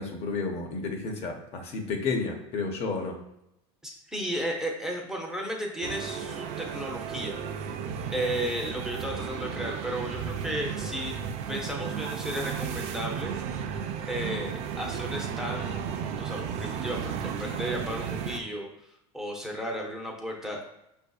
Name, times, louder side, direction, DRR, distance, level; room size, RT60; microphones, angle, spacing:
voice 1, 0.0-3.2, left 4 dB, 45° left, 3 dB, 0.6 m, -31 dB
voice 2, 3.8-7.4 8.1-11.2 11.5-13.3 14.1-15.8 16.2-18.7 19.1-20.6, equal, 5° right, -1 dB, 0.6 m, -34 dB
sound 1, 5.8-18.4, right 7 dB, 45° right, 0.4 m, -34 dB
5.2 x 2.6 x 2.3 m, 0.86 s
supercardioid pair, 130°, 15 cm